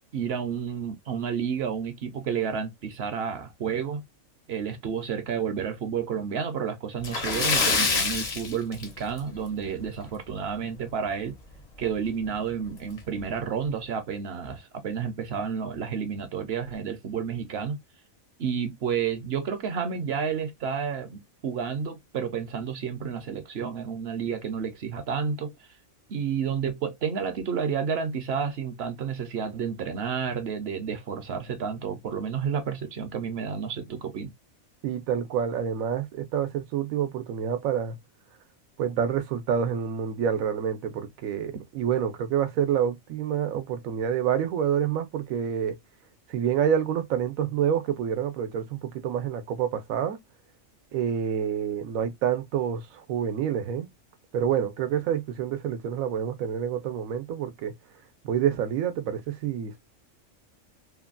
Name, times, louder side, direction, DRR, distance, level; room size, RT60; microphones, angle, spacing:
voice 1, 0.1-4.0 4.5-11.3 11.8-17.8 18.4-25.7 26.1-34.3, right 7 dB, 60° right, 0.8 m, -30 dB
Splash splatter, 7.0-9.4 9.7-9.9 10.3-10.4 11.8-11.9 12.3-12.4 13.0-13.2, left 4 dB, 45° left, 0.5 m, -26 dB
voice 2, 34.8-38.0 38.8-45.8 46.3-50.2 50.9-53.9 54.3-57.7 58.2-59.8, right 8 dB, 85° right, 1.1 m, -27 dB
3.2 x 2.2 x 2.3 m
omnidirectional pair, 1.4 m